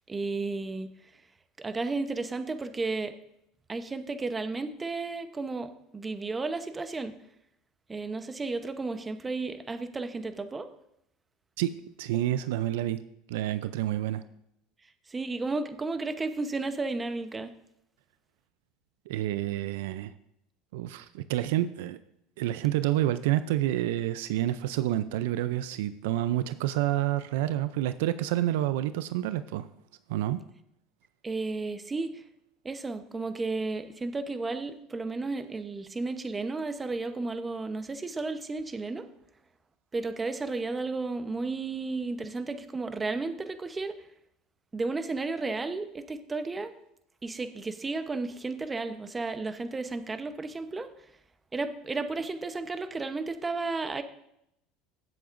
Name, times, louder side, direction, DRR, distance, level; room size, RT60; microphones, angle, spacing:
voice 1, 0.1-0.9 1.6-3.1 3.7-7.1 7.9-10.7 15.1-17.5 31.2-32.2 32.6-39.1 39.9-43.9 44.7-46.7 47.2-50.9 51.5-54.0, right 3 dB, 20° right, 9 dB, 0.9 m, -33 dB
voice 2, 12.0-13.0 13.3-14.2 19.1-20.1 20.7-22.0 22.4-29.7 30.1-30.4, right 13 dB, 85° right, 13 dB, 0.4 m, -28 dB
16.5 x 7.8 x 2.6 m, 0.78 s
supercardioid pair, 105°, 0 cm